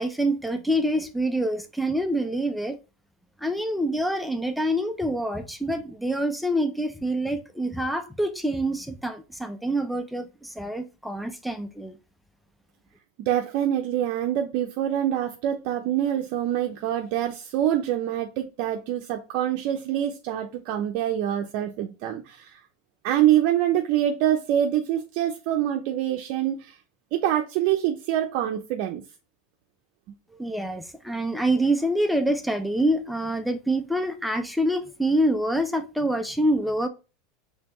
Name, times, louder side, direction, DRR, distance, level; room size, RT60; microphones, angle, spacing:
voice 1, 0.0-2.8 3.4-11.9 30.4-36.9, right 1 dB, ahead, 0.6 m, -26 dB
voice 2, 13.2-22.6 23.0-26.8 27.1-29.0, right 11 dB, 60° right, 0.6 m, -25 dB
4.2 x 3.4 x 3.0 m
supercardioid pair, 120°, 0 cm